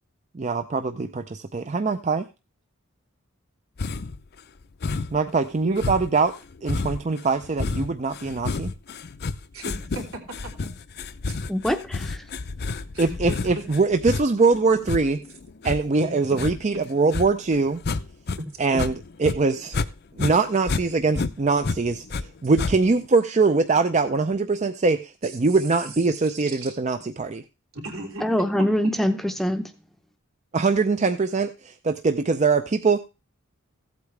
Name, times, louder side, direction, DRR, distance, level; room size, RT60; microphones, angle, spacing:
voice 1, 0.3-2.3 5.1-6.3 6.6-8.7 13.0-15.2 15.6-17.8 18.6-18.9 19.2-19.8 20.2-22.0 22.4-27.4 30.5-33.0, right 4 dB, 35° right, 8 dB, 0.5 m, -22 dB
sound 1, 3.8-4.2 4.8-5.3 5.8-18.4 18.7-19.9 20.2-22.2 22.6-23.1, left 3 dB, 50° left, 0.6 m, -30 dB
voice 2, 9.5-10.7 11.3-11.4 12.9-13.6 16.0-16.4 16.7-16.8 18.4-18.5 18.7-18.8 25.2-25.4 26.5-26.8 27.7-28.7, equal, 75° right, 0 dB, 3.3 m, -35 dB
voice 3, 11.5-12.2 28.2-29.6, equal, ahead, 7 dB, 0.7 m, -24 dB
15.5 x 8.3 x 3.3 m, 0.29 s
head